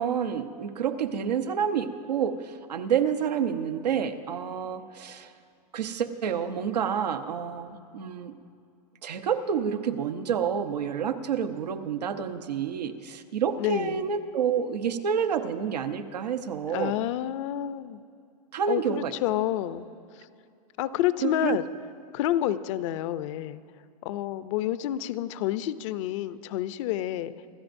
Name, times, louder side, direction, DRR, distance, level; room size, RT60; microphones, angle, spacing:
voice 1, 0.0-5.3 5.7-8.3 9.0-16.9 18.5-19.1 21.2-21.6, right 7 dB, 90° right, 7 dB, 0.9 m, -29 dB
voice 2, 13.6-14.0 16.7-18.0 18.7-19.9 20.8-21.7 22.1-23.6 24.0-27.3, left 13 dB, 50° left, 15 dB, 0.5 m, -29 dB
26.5 x 13.0 x 2.6 m, 2.5 s
hypercardioid pair, 130°, 20 cm